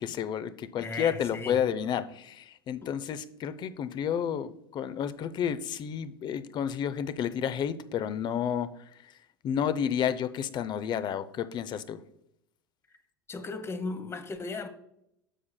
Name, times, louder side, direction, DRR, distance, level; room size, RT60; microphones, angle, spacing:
voice 1, 0.0-8.7 9.4-12.0, left 8 dB, 35° left, 0.6 m, -31 dB
voice 2, 0.8-1.6 2.8-2.9 13.3-14.7, left 3 dB, 20° left, 0.9 m, -36 dB
10.0 x 7.0 x 2.2 m
hypercardioid pair, 85°, 13 cm